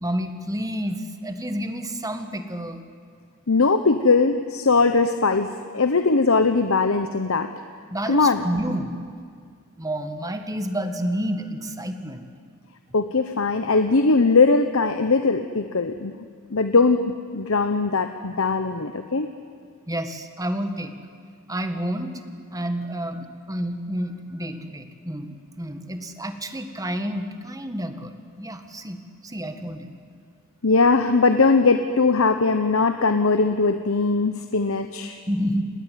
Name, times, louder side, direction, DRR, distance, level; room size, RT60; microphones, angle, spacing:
voice 1, 0.0-2.9 7.9-8.9 9.8-12.3 19.9-20.9 21.5-22.2 22.5-25.3 25.6-30.0 35.3-35.6, equal, 15° right, 7 dB, 1.8 m, -29 dB
voice 2, 3.5-7.5 8.1-8.4 12.9-16.2 16.5-17.0 17.3-19.3 30.6-35.2, left 4 dB, 75° left, 8 dB, 1.0 m, -20 dB
28.5 x 19.5 x 9.4 m, 2.1 s
head